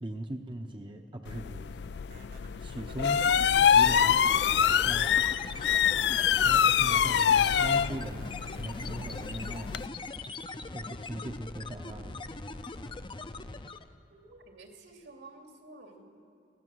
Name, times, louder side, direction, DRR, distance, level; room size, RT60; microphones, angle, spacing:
voice 1, 0.0-1.9 2.6-3.3 3.6-4.2 4.8-5.3 6.4-9.7 10.7-12.2, right 1 dB, 25° right, 4 dB, 0.8 m, -39 dB
sound 1, 1.3-9.9, left 8 dB, 65° left, 0.4 m, -25 dB
sound 2, 2.1-10.5, right 3 dB, 60° right, 1.9 m, -56 dB
sound 3, 3.1-14.0, left 3 dB, 25° left, 0.6 m, -41 dB
voice 2, 14.1-16.0, right 2 dB, 75° right, 2 dB, 2.8 m, -51 dB
21.0 x 16.5 x 7.9 m, 2.9 s
head